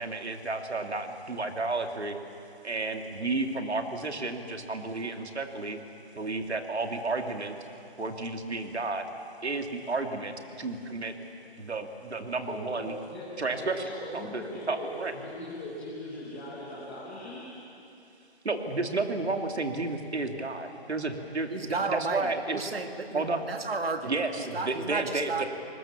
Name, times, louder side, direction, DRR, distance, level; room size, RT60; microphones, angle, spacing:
voice 1, 0.0-2.2 2.6-5.8 6.2-7.6 8.0-9.0 9.4-11.1 11.6-13.0 13.4-15.1 18.4-22.7 23.1-23.4 24.0-25.4, right 3 dB, 85° right, 4 dB, 2.6 m, -32 dB
voice 2, 12.5-17.5, left 1 dB, 5° left, -6 dB, 1.0 m, -40 dB
voice 3, 21.5-25.4, right 3 dB, 65° right, 6 dB, 2.2 m, -33 dB
28.0 x 20.5 x 7.2 m, 2.8 s
hypercardioid pair, 170°, 32 cm